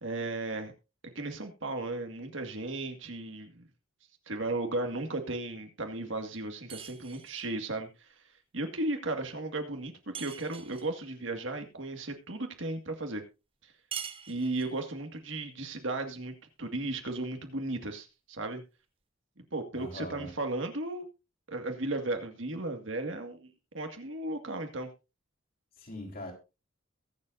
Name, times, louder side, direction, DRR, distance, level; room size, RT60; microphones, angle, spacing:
voice 1, 0.0-0.7 1.0-3.7 4.3-7.9 8.5-13.2 14.3-16.3 16.6-18.6 19.5-21.1 21.5-23.5 23.7-24.9, right 2 dB, 70° right, 2.0 m, -35 dB
sound 1, 6.7-7.5 10.1-10.9 13.9-14.8, right 7 dB, 25° right, 1.1 m, -43 dB
voice 2, 19.7-20.3 25.8-26.3, left 1 dB, 45° left, 4.2 m, -41 dB
22.5 x 7.5 x 2.7 m
head